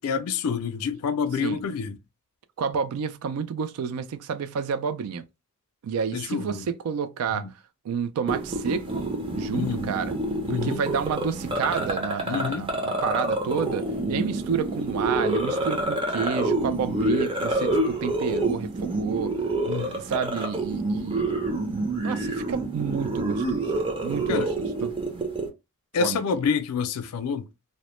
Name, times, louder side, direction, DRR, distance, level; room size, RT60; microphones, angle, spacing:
voice 1, 0.0-2.0 6.1-6.7 7.3-7.5 9.5-9.9 10.5-10.8 12.3-12.7 19.7-19.9 24.3-24.5 25.9-27.5, left 6 dB, 75° left, 0.4 m, -28 dB
voice 2, 2.6-5.2 5.8-7.5 7.8-9.1 9.3-10.2 10.5-19.4 19.7-21.4 22.0-23.7 24.0-24.9 26.0-26.2, right 6 dB, 75° right, 0.3 m, -30 dB
sound 1, 8.3-25.5, right 2 dB, 25° right, 0.5 m, -28 dB
2.1 x 2.0 x 2.9 m
head